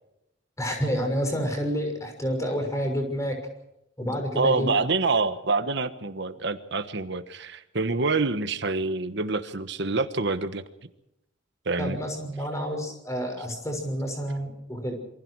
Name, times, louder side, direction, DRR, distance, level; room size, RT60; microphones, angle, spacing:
voice 1, 0.6-3.4 4.0-4.7 11.8-14.9, equal, 15° left, 4 dB, 6.3 m, -29 dB
voice 2, 4.4-10.6 11.6-12.0, right 3 dB, 60° right, 10 dB, 1.3 m, -26 dB
27.5 x 24.0 x 4.8 m, 0.85 s
head